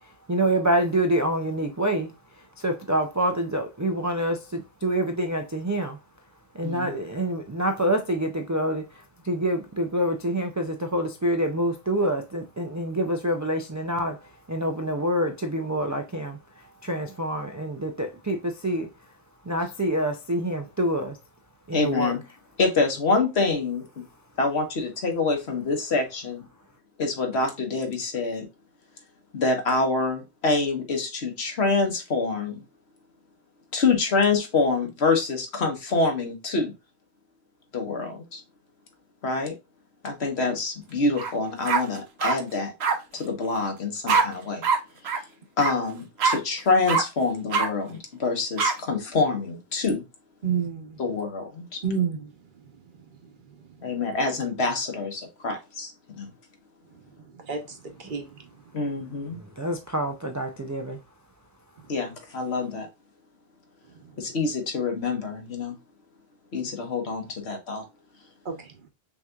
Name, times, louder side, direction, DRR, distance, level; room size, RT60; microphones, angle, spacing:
voice 1, 0.3-2.1 2.6-6.0 6.6-8.8 9.2-14.2 14.5-16.4 16.8-18.9 19.5-21.2 21.7-22.1 59.6-61.0, right 1 dB, 30° right, 0.3 m, -26 dB
voice 2, 6.6-6.9 21.7-22.2 22.6-24.0 24.4-26.5 27.0-28.5 29.3-32.6 33.7-36.7 37.7-38.4 39.2-39.5 40.0-42.7 43.1-44.6 45.6-50.0 51.0-51.8 53.8-56.3 58.7-59.4 61.9-62.9 64.2-65.8 66.5-67.8, left 3 dB, 75° left, 1.5 m, -26 dB
sound 1, 41.2-41.3 41.7-42.4 42.8-43.0 44.1-44.2 44.6-44.8 45.0-45.2 45.6-45.7 46.2-46.4 46.9-47.0 47.5-47.7 48.6-48.7, right 5 dB, 75° right, 1.1 m, -22 dB
voice 3, 50.4-51.0 51.8-52.3 57.3-58.3 68.4-68.7, right 6 dB, 50° right, 1.0 m, -29 dB
5.9 x 2.9 x 2.3 m
omnidirectional pair, 1.1 m